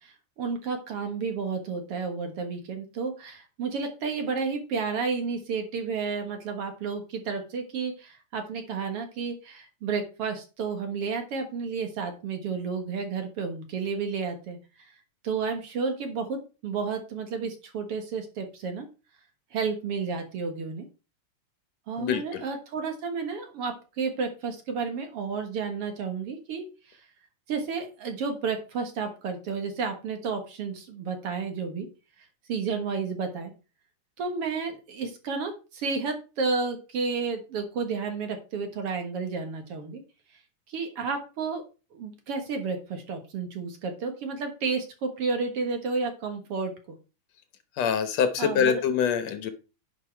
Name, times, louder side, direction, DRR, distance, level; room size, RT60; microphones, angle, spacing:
voice 1, 0.0-14.9 15.2-18.9 19.5-20.9 21.9-27.0 27.5-31.9 32.5-33.5 34.2-40.0 40.7-41.6 41.9-46.7 48.4-48.8, right 5 dB, 55° right, 5 dB, 2.1 m, -31 dB
voice 2, 22.0-22.4 47.8-49.5, left 8 dB, 65° left, 9 dB, 2.1 m, -25 dB
10.5 x 5.5 x 4.5 m, 0.32 s
omnidirectional pair, 3.5 m